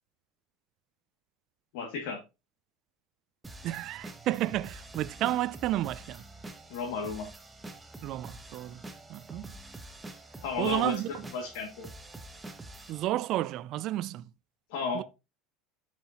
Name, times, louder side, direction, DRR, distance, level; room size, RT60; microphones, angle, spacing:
voice 1, 1.7-2.2 6.7-7.3 10.4-10.9 11.3-11.9 14.7-15.0, left 5 dB, 70° left, 2.4 m, -33 dB
sound 1, 3.4-13.0, right 2 dB, 10° right, 1.2 m, -47 dB
voice 2, 3.6-6.2 8.0-8.8 9.1-9.5 10.6-11.3 12.9-14.3 14.9-15.0, right 14 dB, 55° right, 0.4 m, -31 dB
11.5 x 5.9 x 3.0 m
supercardioid pair, 110°, 0 cm